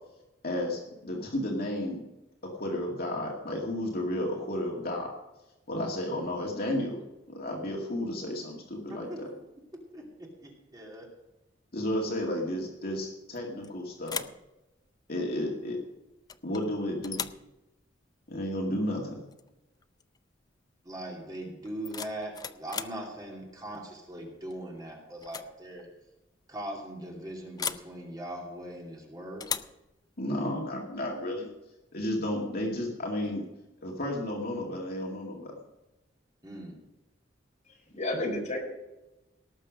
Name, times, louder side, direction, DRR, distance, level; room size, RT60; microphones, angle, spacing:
voice 1, 0.4-2.0 2.4-5.1 5.7-7.0 7.3-9.3 11.7-14.3 15.1-15.8 16.4-17.2 18.3-19.2 30.2-31.5 31.9-33.4 33.8-35.5, left 1 dB, 55° left, -1 dB, 2.2 m, -32 dB
voice 2, 9.9-11.1 20.8-25.9 26.5-29.5 36.4-36.7, right 1 dB, 20° right, -1 dB, 2.6 m, -40 dB
sound 1, 13.3-13.7 14.0-14.4 16.3-16.6 17.0-17.5 19.3-19.5 19.8-20.2 21.6-23.0 24.5-24.8 25.2-25.5 25.8-25.9 27.6-27.9 29.4-29.8, left 6 dB, 20° left, 0.4 m, -37 dB
voice 3, 37.6-38.6, left 1 dB, 40° left, -1 dB, 5.0 m, -32 dB
18.0 x 6.7 x 6.3 m, 0.99 s
head